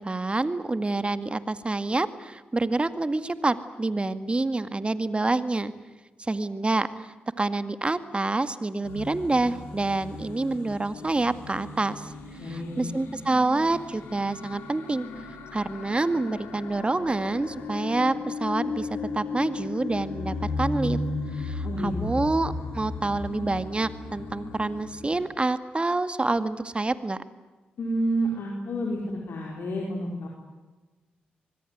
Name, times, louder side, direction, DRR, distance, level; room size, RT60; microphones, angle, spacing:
voice 1, 0.0-5.7 6.3-12.1 12.4-15.1 15.5-18.9 19.1-21.0 21.3-27.2, right 2 dB, 30° right, 12 dB, 2.0 m, -27 dB
sound 1, 8.8-25.2, left 3 dB, 85° left, 3.5 m, -35 dB
voice 2, 12.4-12.8 21.6-22.3 27.8-30.3, right 1 dB, 65° left, 0 dB, 4.8 m, -30 dB
24.5 x 21.0 x 9.4 m, 1.2 s
hypercardioid pair, 40°, 4 cm